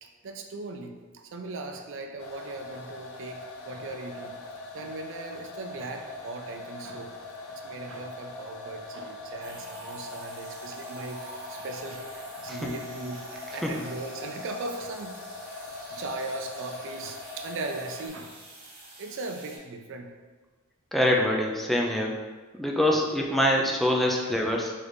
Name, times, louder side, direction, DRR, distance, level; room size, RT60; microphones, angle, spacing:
voice 1, 0.0-4.4 4.7-7.2 7.5-15.2 15.9-18.4 19.0-20.1 22.9-23.0, right 2 dB, 60° right, 4 dB, 0.4 m, -38 dB
sound 1, 2.2-18.1, left 2 dB, 75° left, 0.5 m, -41 dB
sound 2, 9.4-19.6, right 1 dB, 45° right, 1.2 m, -46 dB
voice 2, 20.9-22.1 22.5-24.7, left 1 dB, ahead, -1 dB, 0.4 m, -24 dB
3.2 x 3.2 x 3.9 m, 1.3 s
head